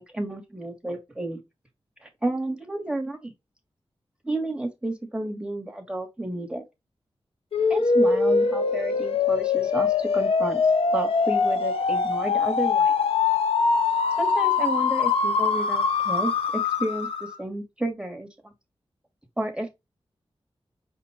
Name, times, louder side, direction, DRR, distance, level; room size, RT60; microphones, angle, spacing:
voice 1, 0.0-1.4 2.0-3.3 4.2-6.6 7.7-12.9 14.2-18.5 19.4-19.7, right 1 dB, 10° right, 1.2 m, -31 dB
sound 1, 7.5-17.4, left 5 dB, 75° left, 0.7 m, -23 dB
5.1 x 2.2 x 4.0 m
wide cardioid pair, 65°, 10 cm